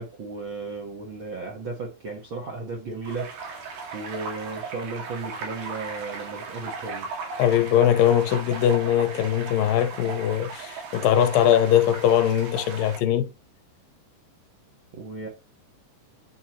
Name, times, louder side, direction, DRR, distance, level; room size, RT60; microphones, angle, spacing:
voice 1, 0.0-7.1 14.9-15.3, right 3 dB, 60° right, 1.3 m, -35 dB
sound 1, 3.0-13.0, right 4 dB, 85° right, 3.9 m, -37 dB
voice 2, 7.4-13.3, left 10 dB, 80° left, 2.4 m, -21 dB
11.0 x 4.4 x 2.9 m
omnidirectional pair, 4.1 m